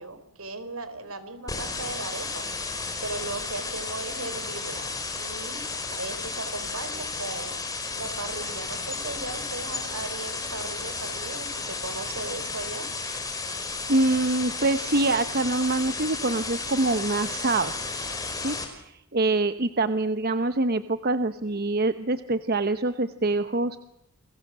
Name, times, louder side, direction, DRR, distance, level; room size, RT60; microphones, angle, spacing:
voice 1, 0.0-2.5 3.0-4.9 5.2-5.6 5.9-7.6 8.0-12.9, right 2 dB, 70° right, 12 dB, 4.4 m, -37 dB
sound 1, 1.5-18.6, left 3 dB, 15° left, 5.2 m, -33 dB
voice 2, 13.9-17.8 18.4-23.8, right 2 dB, 45° right, 10 dB, 1.0 m, -25 dB
30.0 x 22.0 x 7.6 m, 0.81 s
head